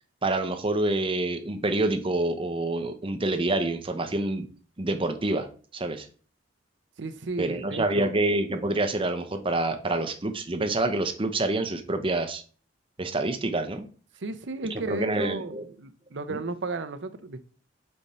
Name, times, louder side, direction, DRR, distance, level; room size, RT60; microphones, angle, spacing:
voice 1, 0.2-4.5 4.8-5.5 5.7-6.1 7.4-12.4 13.0-13.9 14.7-15.6 16.3-16.4, right 2 dB, 30° right, 7 dB, 0.8 m, -27 dB
voice 2, 7.0-8.1 14.2-17.4, right 3 dB, 70° right, 10 dB, 0.6 m, -34 dB
5.2 x 4.4 x 4.2 m, 0.41 s
head